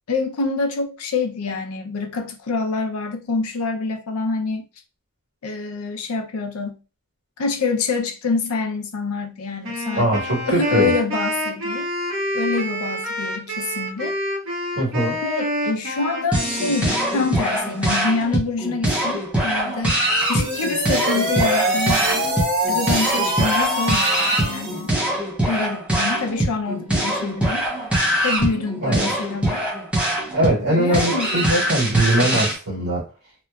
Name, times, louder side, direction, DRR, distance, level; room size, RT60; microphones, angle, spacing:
voice 1, 0.1-4.7 5.4-6.8 7.4-10.1 10.5-11.9 12.3-14.2 15.2-20.0 20.3-22.2 22.7-24.9 25.5-27.7 28.2-29.7 30.7-31.3, left 4 dB, 80° left, 0.4 m, -26 dB
Wind instrument woodwind instrument, 9.6-17.8, equal, 70° right, 0.9 m, -27 dB
voice 2, 10.0-10.9 14.8-15.2 28.8-29.1 30.3-33.1, right 1 dB, 90° right, 1.4 m, -21 dB
sound 1, 16.3-32.6, right 1 dB, 5° right, 0.6 m, -23 dB
sound 2, 20.1-24.9, right 1 dB, 45° right, 0.8 m, -24 dB
2.8 x 2.2 x 2.2 m
head